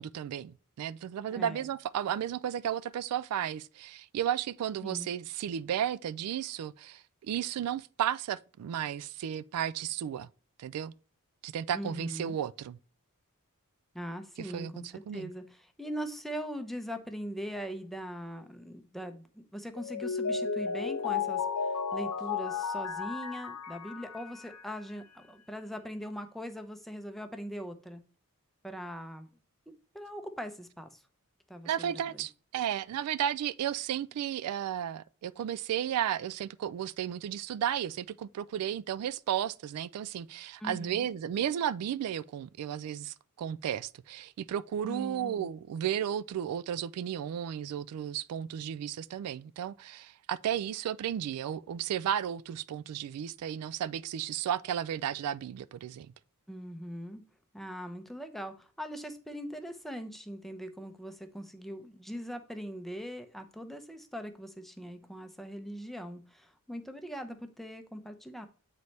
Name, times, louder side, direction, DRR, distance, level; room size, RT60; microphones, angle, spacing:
voice 1, 0.0-10.3 10.6-10.9 11.4-12.8 14.4-14.7 15.1-15.3 31.7-56.1, right 9 dB, 80° right, 0.3 m, -34 dB
voice 2, 1.3-1.7 4.8-5.1 11.7-12.4 13.9-28.0 28.6-29.3 29.9-31.0 31.5-32.3 40.6-41.1 44.9-45.5 56.5-57.2 57.5-68.5, equal, ahead, 0.6 m, -41 dB
Mallet percussion, 19.8-24.7, left 6 dB, 75° left, 0.6 m, -33 dB
8.0 x 4.1 x 3.2 m
head